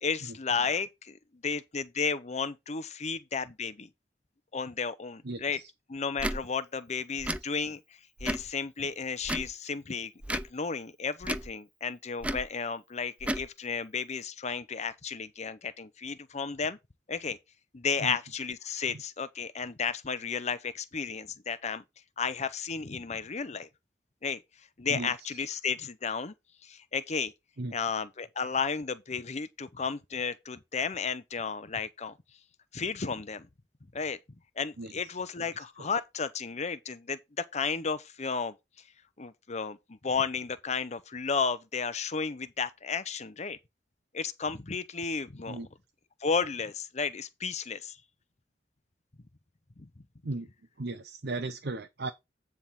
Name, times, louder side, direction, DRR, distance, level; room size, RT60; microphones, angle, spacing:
voice 1, 0.0-3.9 4.5-5.6 5.9-7.8 8.2-16.8 17.1-17.4 17.7-21.8 22.2-23.7 24.2-24.4 24.8-26.3 26.6-27.3 27.7-32.2 32.7-33.5 33.9-34.2 34.6-38.5 39.2-43.6 44.1-45.6 46.2-48.0 49.8-49.9, left 5 dB, 40° left, 0.8 m, -33 dB
voice 2, 5.2-5.7 18.0-18.2 24.9-25.4 27.6-27.8 34.8-35.5 35.8-35.9 45.5-45.7 50.2-50.5 50.8-52.1, right 2 dB, 65° right, 0.8 m, -37 dB
Tick / Tick-tock, 6.2-6.4 7.2-7.4 8.2-8.5 9.2-9.5 10.2-10.5 11.2-11.5 12.2-12.5 13.2-13.5, right 1 dB, 5° right, 0.4 m, -33 dB
9.8 x 3.6 x 5.8 m
head